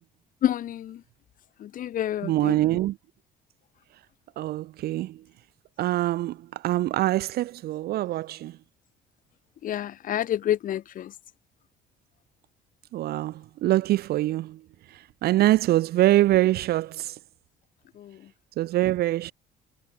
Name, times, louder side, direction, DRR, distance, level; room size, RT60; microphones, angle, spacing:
voice 1, 0.4-1.0 1.6-2.6 9.6-11.1 18.0-18.2, left 11 dB, 55° left, 0.9 m, -28 dB
voice 2, 2.2-3.0 4.4-5.2 5.8-8.6 12.9-14.6 14.9-17.2 18.6-19.3, right 15 dB, 70° right, 0.8 m, -24 dB
cardioid pair, 110°, 17 cm